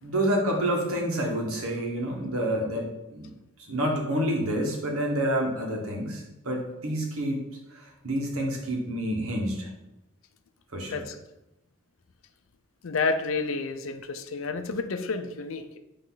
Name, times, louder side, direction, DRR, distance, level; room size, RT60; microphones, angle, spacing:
voice 1, 0.0-3.3 3.6-7.4 7.7-9.7 10.7-11.0, right 1 dB, 80° right, 0 dB, 1.5 m, -28 dB
voice 2, 12.8-15.8, left 4 dB, 70° left, 8 dB, 0.5 m, -30 dB
8.5 x 3.1 x 3.9 m, 0.94 s
head